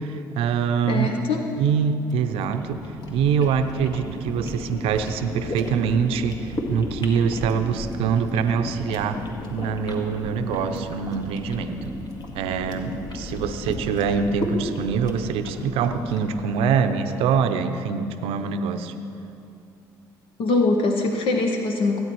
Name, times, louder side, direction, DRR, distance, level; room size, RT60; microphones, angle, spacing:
voice 1, 0.0-1.1 1.6-9.2 9.5-11.9 12.3-18.9, right 6 dB, 70° right, 9 dB, 0.6 m, -24 dB
voice 2, 0.9-1.5 20.4-22.0, left 3 dB, 65° left, 3 dB, 0.9 m, -22 dB
sound 1, 2.0-17.3, left 1 dB, 45° left, 1.7 m, -34 dB
17.0 x 8.8 x 3.1 m, 2.6 s
hypercardioid pair, 55°, 10 cm